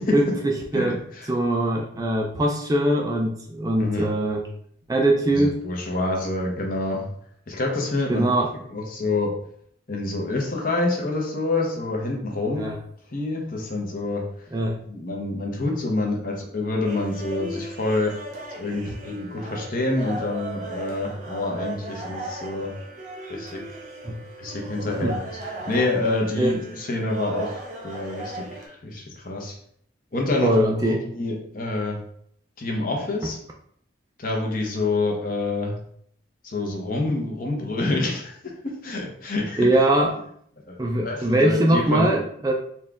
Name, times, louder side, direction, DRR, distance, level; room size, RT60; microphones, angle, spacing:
voice 1, 0.1-1.0 1.3-4.4 4.9-5.6 8.1-8.5 12.5-12.8 14.5-14.8 24.0-24.2 24.9-25.1 26.4-26.5 30.4-31.0 33.2-33.3 39.6-40.2 40.8-42.5, right 1 dB, 20° right, 1 dB, 0.3 m, -22 dB
voice 2, 3.8-4.1 5.3-7.1 7.5-8.3 8.7-9.3 9.9-12.7 13.1-14.2 14.9-18.1 18.6-22.7 23.3-23.6 24.4-25.1 25.7-29.6 30.1-32.0 32.6-33.4 34.2-35.8 36.4-38.4 38.6-39.7 40.7-42.1, left 2 dB, 45° left, 0 dB, 0.9 m, -27 dB
sound 1, 16.8-28.7, right 2 dB, 40° right, 0.7 m, -37 dB
4.3 x 2.4 x 3.4 m, 0.66 s
head